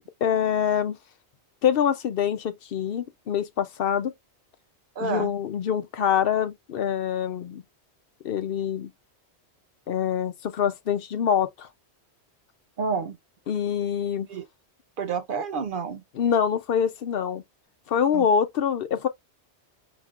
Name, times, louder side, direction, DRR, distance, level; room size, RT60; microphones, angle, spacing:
voice 1, 0.2-1.0 1.6-4.1 5.0-7.6 8.2-8.9 9.9-11.7 13.5-14.3 16.1-17.4 17.9-19.1, left 8 dB, 65° left, 0.7 m, -25 dB
voice 2, 5.0-5.3 12.8-13.2 14.3-14.5 15.0-16.0 18.1-18.3, right 5 dB, 60° right, 0.7 m, -29 dB
5.7 x 2.9 x 2.4 m
omnidirectional pair, 1.1 m